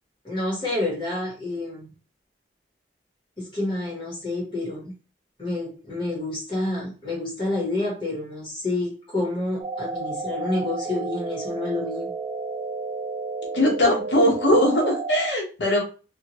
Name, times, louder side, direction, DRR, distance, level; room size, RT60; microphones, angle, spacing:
voice 1, 0.2-1.9 3.4-4.9 5.4-12.1, left 2 dB, 25° left, -5 dB, 1.3 m, -28 dB
sound 1, 9.6-15.3, right 4 dB, 35° right, 0.5 m, -31 dB
voice 2, 13.5-15.8, equal, 80° left, -2 dB, 1.0 m, -20 dB
2.7 x 2.6 x 3.0 m, 0.34 s
head